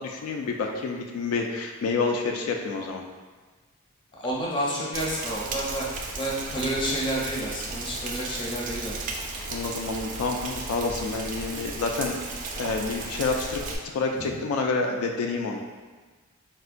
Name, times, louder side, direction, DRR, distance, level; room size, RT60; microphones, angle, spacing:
voice 1, 0.0-3.0 9.4-12.2 12.5-13.6 13.9-15.6, left 4 dB, 75° left, 3 dB, 0.3 m, -28 dB
voice 2, 4.1-5.8 6.1-8.9 14.2-14.3, equal, 25° left, -4 dB, 0.5 m, -30 dB
Rain, 4.9-13.8, right 3 dB, 40° right, 0.3 m, -35 dB
4.3 x 2.1 x 2.4 m, 1.3 s
head